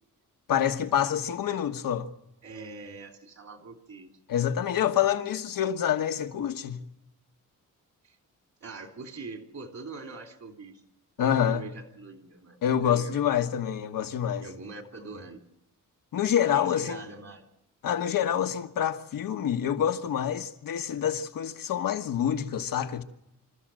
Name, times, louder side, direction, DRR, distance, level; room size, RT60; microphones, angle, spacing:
voice 1, 0.5-2.1 4.3-6.8 11.2-11.7 12.6-14.4 16.1-17.1 17.8-23.0, left 9 dB, 80° left, 1.4 m, -27 dB
voice 2, 2.4-4.1 4.5-4.6 8.0-8.2 8.6-10.9 11.2-13.3 14.4-15.4 16.5-17.5, right 3 dB, 55° right, 3.1 m, -43 dB
26.5 x 13.5 x 7.6 m
cardioid pair, 100°, 33 cm